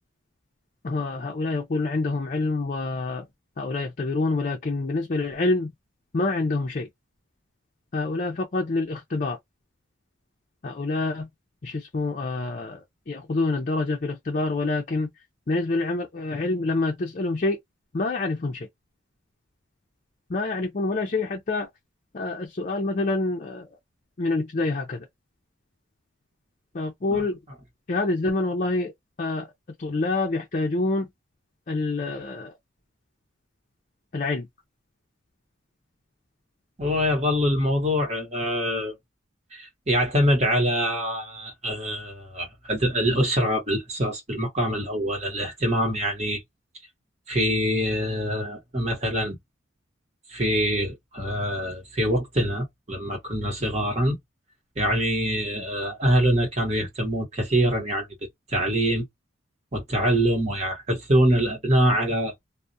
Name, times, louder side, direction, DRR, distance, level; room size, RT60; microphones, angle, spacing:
voice 1, 0.8-3.3 3.6-5.7 6.1-6.9 7.9-9.4 10.6-11.3 11.6-15.1 15.5-17.6 17.9-18.7 20.3-21.7 22.1-23.7 24.2-25.1 26.7-27.4 27.9-28.9 29.2-29.5 29.8-31.1 31.7-32.5 34.1-34.5, left 3 dB, 40° left, 0.5 m, -27 dB
voice 2, 36.8-38.9 39.5-46.4 47.3-49.4 50.3-54.2 54.8-58.1 58.5-59.0 59.7-62.3, equal, 35° right, 1.0 m, -24 dB
2.3 x 2.1 x 2.6 m
head